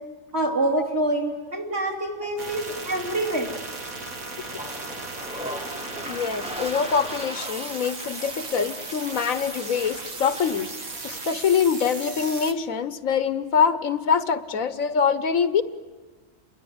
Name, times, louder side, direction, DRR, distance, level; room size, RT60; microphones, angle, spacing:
voice 1, 0.3-3.5, right 1 dB, 50° right, 2 dB, 3.3 m, -26 dB
sound 1, 2.4-12.5, right 3 dB, 85° right, 2.2 m, -36 dB
Toilet flush, 4.3-11.1, equal, 5° right, 1.2 m, -39 dB
voice 2, 6.1-10.7 11.0-15.6, left 6 dB, 80° left, 12 dB, 1.5 m, -24 dB
28.5 x 22.0 x 9.5 m, 1.4 s
omnidirectional pair, 1.4 m